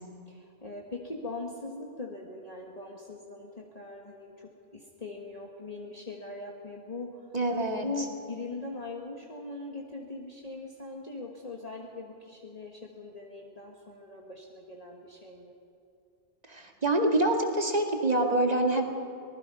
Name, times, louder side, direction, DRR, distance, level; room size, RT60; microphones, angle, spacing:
voice 1, 0.3-7.3 7.8-15.5, left 3 dB, 35° left, 0 dB, 1.6 m, -41 dB
voice 2, 7.3-7.9 16.5-18.8, right 1 dB, 35° right, 2 dB, 2.3 m, -26 dB
25.5 x 19.0 x 5.5 m, 2.8 s
omnidirectional pair, 1.1 m